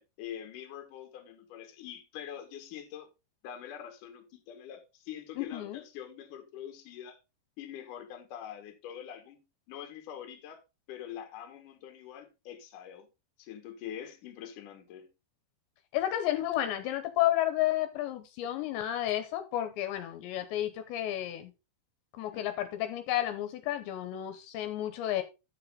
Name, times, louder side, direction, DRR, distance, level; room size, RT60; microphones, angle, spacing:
voice 1, 0.0-3.1 3.4-7.2 7.6-10.6 10.9-13.1 13.4-15.1 22.3-22.4, left 9 dB, 60° left, 2.5 m, -44 dB
voice 2, 5.4-5.8 15.9-21.5 22.2-25.2, left 13 dB, 80° left, 3.0 m, -31 dB
9.5 x 6.9 x 3.9 m
omnidirectional pair, 5.3 m